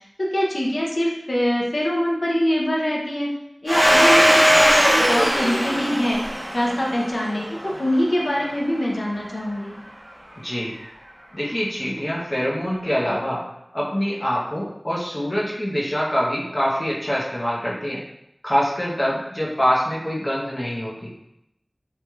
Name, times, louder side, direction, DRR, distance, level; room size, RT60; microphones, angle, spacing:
voice 1, 0.2-3.3 3.6-6.2 6.5-9.7, equal, 90° left, -4 dB, 0.6 m, -23 dB
Domestic sounds home sounds, 3.7-8.1, equal, 80° right, 0.8 m, -19 dB
voice 2, 10.4-10.7 11.3-13.5 13.7-18.0 18.4-21.1, equal, 40° left, -5 dB, 0.7 m, -24 dB
3.0 x 2.7 x 2.3 m, 0.84 s
wide cardioid pair, 45°, 0 cm